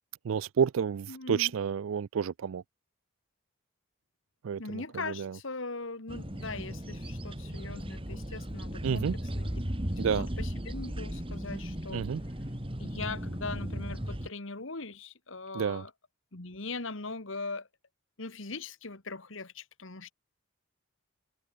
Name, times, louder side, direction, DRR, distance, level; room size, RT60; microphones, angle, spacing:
voice 1, 0.2-2.6 4.4-5.4 8.8-9.1 10.0-10.3 11.9-12.2 15.5-15.8, right 7 dB, 75° right, 0.4 m, -30 dB
voice 2, 1.1-1.5 4.6-9.6 10.0-12.1 12.8-15.9 16.3-17.7 18.2-20.1, left 3 dB, 65° left, 1.9 m, -40 dB
sound 1, 6.1-14.3, equal, 25° right, 2.7 m, -36 dB
head